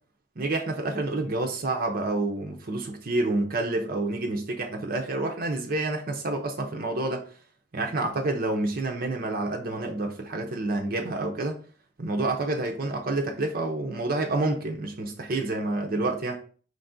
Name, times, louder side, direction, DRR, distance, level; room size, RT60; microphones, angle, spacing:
voice 1, 0.4-7.2 7.7-11.6 12.0-16.4, right 2 dB, 55° right, 0.7 m, -28 dB
5.1 x 2.6 x 3.6 m
head